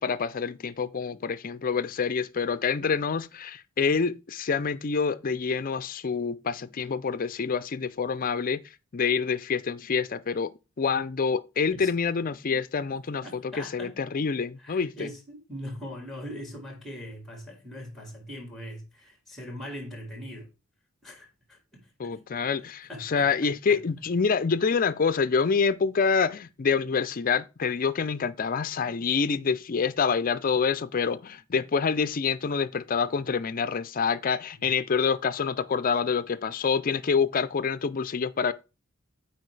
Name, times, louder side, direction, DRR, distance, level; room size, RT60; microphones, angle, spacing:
voice 1, 0.0-8.6 8.9-15.1 22.0-38.5, left 5 dB, 40° left, 0.5 m, -27 dB
voice 2, 13.2-13.9 14.6-20.5 21.0-22.2 22.9-23.8 34.6-34.7, equal, ahead, 1.9 m, -41 dB
8.5 x 4.6 x 3.3 m
head